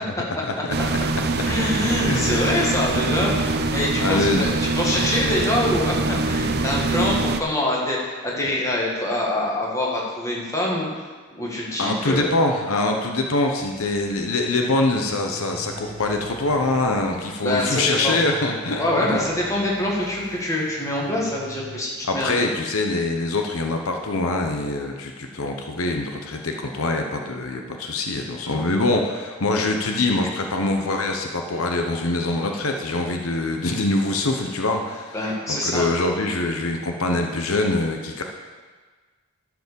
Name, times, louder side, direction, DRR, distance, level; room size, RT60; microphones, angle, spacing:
sound 1, 0.7-7.4, right 3 dB, 50° right, 0.6 m, -24 dB
voice 1, 1.4-10.9 11.3-12.3 17.4-18.2 18.8-22.4 35.1-35.9, left 1 dB, 15° left, -4 dB, 1.9 m, -25 dB
voice 2, 2.0-2.8 4.0-4.4 11.8-19.2 22.1-35.2 35.5-38.2, left 2 dB, 75° left, 3 dB, 0.9 m, -24 dB
sound 2, 13.6-21.8, right 3 dB, 75° right, 0.9 m, -42 dB
12.0 x 4.9 x 6.9 m, 1.4 s
head